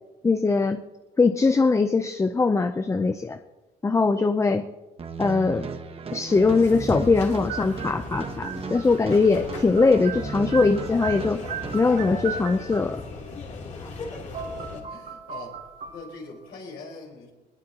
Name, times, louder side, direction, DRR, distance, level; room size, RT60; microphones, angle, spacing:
voice 1, 0.2-0.8 1.2-3.4 3.8-4.7 5.2-5.7 6.1-11.4 11.7-13.0, left 4 dB, 15° left, 9 dB, 0.6 m, -21 dB
sound 1, 5.0-11.8, right 4 dB, 35° right, 1.3 m, -36 dB
sound 2, 6.3-14.8, left 3 dB, 45° left, 3.2 m, -38 dB
sound 3, 7.5-9.3 9.5-13.1 14.0-14.1 14.3-16.5, right 7 dB, 60° right, 4.0 m, -37 dB
voice 2, 14.4-15.6 15.9-17.3, left 3 dB, 70° left, -1 dB, 4.8 m, -42 dB
21.0 x 19.5 x 2.9 m, 1.1 s
cardioid pair, 110°, 17 cm